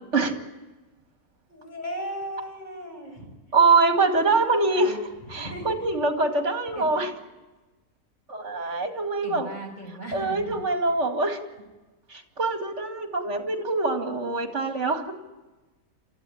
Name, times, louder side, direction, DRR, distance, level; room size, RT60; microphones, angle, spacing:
voice 1, 1.5-3.3 4.2-5.9 6.7-6.8 8.6-8.8 9.2-10.6, right 1 dB, 30° left, 2 dB, 6.4 m, -37 dB
voice 2, 3.5-4.9 5.3-7.1 8.3-9.5 10.1-11.4 12.1-15.1, right 3 dB, 50° right, 7 dB, 2.6 m, -24 dB
29.0 x 14.0 x 9.9 m, 1.1 s
omnidirectional pair, 1.6 m